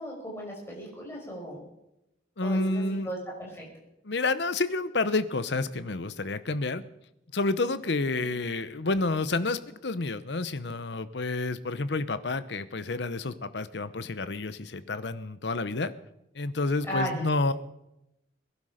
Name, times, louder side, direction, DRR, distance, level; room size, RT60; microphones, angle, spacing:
voice 1, 0.0-1.6 2.4-3.6 8.2-8.3 16.9-17.2, equal, 15° left, -3 dB, 5.8 m, -35 dB
voice 2, 2.4-3.1 4.0-6.8 7.3-15.9 16.3-17.5, left 3 dB, 65° left, 14 dB, 0.9 m, -29 dB
21.5 x 11.5 x 5.1 m, 0.88 s
head